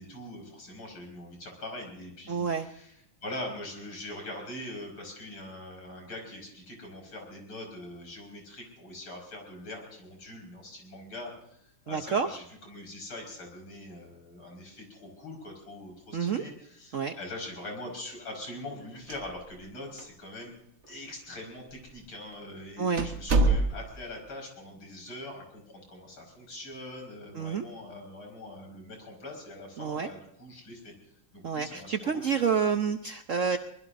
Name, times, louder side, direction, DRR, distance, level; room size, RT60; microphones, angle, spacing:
voice 1, 0.0-3.0 3.2-11.3 11.6-20.5 20.9-30.9 31.3-32.2, left 1 dB, 75° left, 1 dB, 6.1 m, -43 dB
voice 2, 2.3-2.7 11.9-12.3 16.1-16.4 16.9-17.2 22.8-23.1 27.3-27.7 29.8-30.1 31.4-33.6, right 6 dB, 60° right, 6 dB, 0.8 m, -28 dB
sound 1, 18.9-19.7 20.0-20.1 20.8-20.9 21.7-21.9 22.3-22.4 23.0-24.1, right 2 dB, 40° right, 1.3 m, -26 dB
24.0 x 20.5 x 2.7 m, 0.75 s
omnidirectional pair, 2.2 m